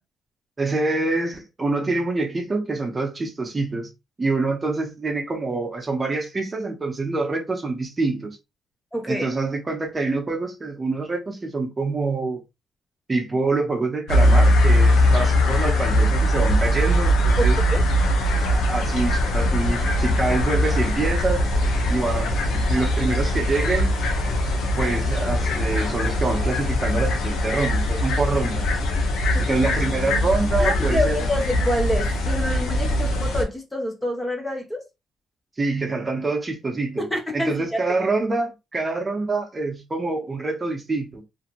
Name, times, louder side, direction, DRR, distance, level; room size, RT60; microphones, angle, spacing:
voice 1, 0.6-3.9 4.2-8.4 9.1-12.4 13.1-17.6 18.4-21.4 21.9-23.9 24.8-28.6 29.4-31.1 35.6-37.0 37.3-41.2, right 3 dB, 25° right, 0.7 m, -26 dB
voice 2, 8.9-9.3 17.4-17.8 29.3-29.6 30.6-34.8 37.0-37.8, left 1 dB, 15° left, 0.9 m, -27 dB
sound 1, 14.1-33.4, left 1 dB, 80° left, 0.7 m, -21 dB
2.8 x 2.6 x 2.5 m
cardioid pair, 90°, 0 cm